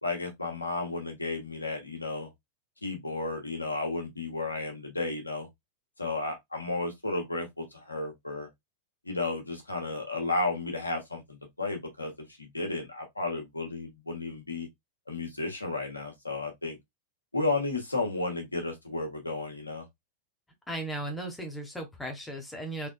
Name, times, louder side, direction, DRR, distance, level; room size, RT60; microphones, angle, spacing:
voice 1, 0.0-2.3 2.8-5.5 6.0-8.5 9.0-14.7 15.1-16.8 17.3-19.9, left 2 dB, 85° left, 1.4 m, -33 dB
voice 2, 20.7-22.9, right 1 dB, 10° left, 1.3 m, -36 dB
3.6 x 3.5 x 2.2 m
figure-of-eight pair, 90°, 0 cm